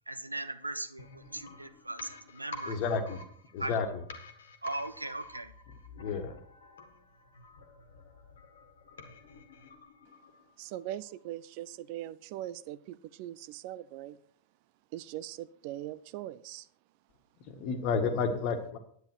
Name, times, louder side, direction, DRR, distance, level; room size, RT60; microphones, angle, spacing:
voice 1, 0.1-2.8 3.6-3.8 4.6-5.5, right 2 dB, 85° right, 0.7 m, -38 dB
sound 1, 1.0-10.7 11.0-11.1, left 2 dB, 65° left, 1.6 m, -50 dB
voice 2, 2.7-3.2 3.5-4.0 6.0-6.3 17.5-18.8, left 5 dB, 45° left, 1.6 m, -31 dB
voice 3, 10.6-14.2 14.9-16.7, right 13 dB, 45° right, 0.5 m, -41 dB
10.5 x 9.1 x 4.6 m
figure-of-eight pair, 90°, 0 cm